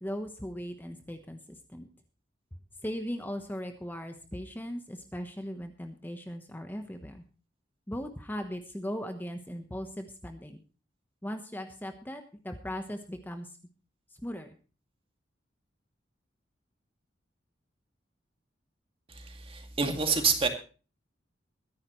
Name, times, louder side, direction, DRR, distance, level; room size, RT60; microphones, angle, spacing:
voice 1, 0.0-1.9 2.8-7.2 7.9-10.6 11.2-13.6 14.2-14.5, equal, 10° left, 6 dB, 1.1 m, -38 dB
voice 2, 19.1-20.5, right 5 dB, 30° right, 5 dB, 2.3 m, -28 dB
22.5 x 10.5 x 3.1 m, 0.35 s
head